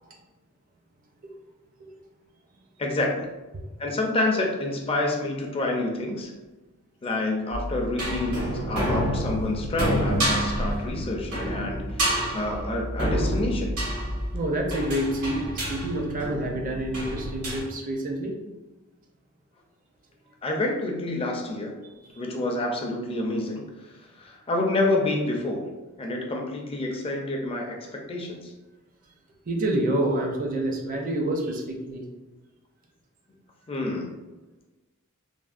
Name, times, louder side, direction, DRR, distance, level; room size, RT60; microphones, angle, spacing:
voice 1, 2.8-3.3 3.8-6.3 7.0-13.7 20.4-21.7 22.2-23.6 24.2-25.7 26.0-28.5 33.7-34.1, left 2 dB, 25° left, 1 dB, 0.4 m, -28 dB
sound 1, 7.5-17.6, equal, 90° right, 1.3 m, -28 dB
voice 2, 14.3-18.4 22.0-22.2 28.2-28.3 29.5-32.0, right 1 dB, 40° right, 1 dB, 0.5 m, -28 dB
3.4 x 2.1 x 2.4 m, 1.1 s
head